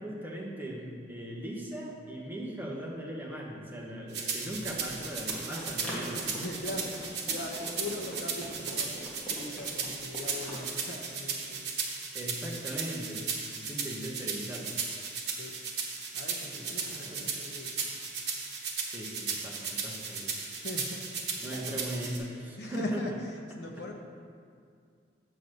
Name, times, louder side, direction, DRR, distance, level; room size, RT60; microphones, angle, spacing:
voice 1, 0.0-6.4 12.1-13.3 13.6-14.8 16.5-17.4 18.8-20.4 21.4-23.1, equal, 10° right, -3 dB, 1.0 m, -39 dB
sound 1, 4.1-22.2, right 5 dB, 65° right, 1.1 m, -36 dB
Run, 4.4-10.6, right 1 dB, 5° left, 1.7 m, -43 dB
voice 2, 6.3-7.0 7.3-11.6 15.3-15.5 16.1-17.9 20.6-21.8 22.6-23.9, left 1 dB, 65° left, 1 dB, 0.9 m, -41 dB
7.6 x 4.0 x 6.4 m, 2.2 s
head